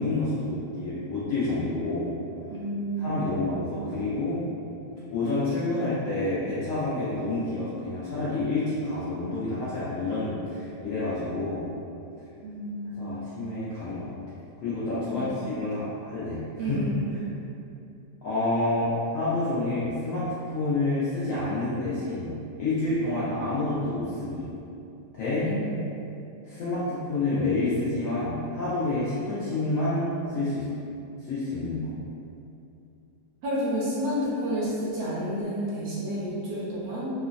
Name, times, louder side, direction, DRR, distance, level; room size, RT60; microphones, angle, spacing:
voice 1, 0.0-2.1 3.0-4.8 5.1-11.6 13.0-14.1 14.6-16.8 18.2-24.5 25.1-25.4 26.5-30.6 31.2-31.9, left 2 dB, 70° left, -11 dB, 0.7 m, -28 dB
voice 2, 2.5-3.4 12.4-13.4 15.1-15.4 16.6-17.1 25.4-25.8 33.4-37.1, equal, 70° right, -7 dB, 1.0 m, -30 dB
3.0 x 2.0 x 2.5 m, 2.7 s
omnidirectional pair, 1.8 m